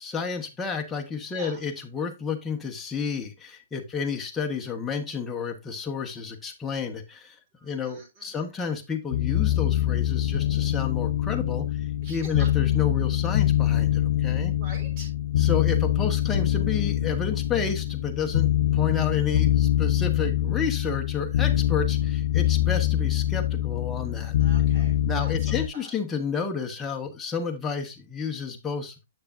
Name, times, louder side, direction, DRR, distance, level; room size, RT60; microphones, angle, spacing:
voice 1, 0.0-7.4 7.6-14.6 15.4-24.3 25.0-28.9, left 5 dB, 10° left, 2 dB, 1.1 m, -31 dB
voice 2, 7.6-8.4 12.0-12.5 14.6-15.1 24.4-25.3 25.7-25.9, right 2 dB, 35° right, 1 dB, 3.1 m, -45 dB
sound 1, 9.1-25.7, left 12 dB, 60° left, 0.5 m, -24 dB
7.4 x 6.6 x 2.6 m, 0.25 s
hypercardioid pair, 140°, 0 cm